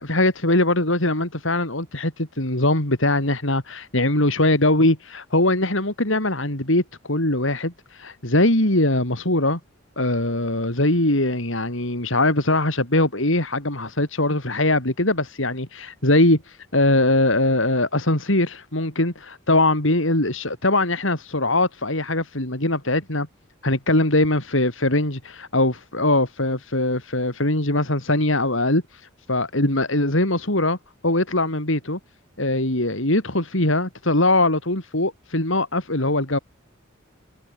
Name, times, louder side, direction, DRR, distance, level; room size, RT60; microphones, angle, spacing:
voice 1, 0.0-9.6 10.0-23.3 23.6-28.8 29.3-30.8 31.0-32.0 32.4-36.4, left 2 dB, 65° left, 4.4 m, -21 dB
head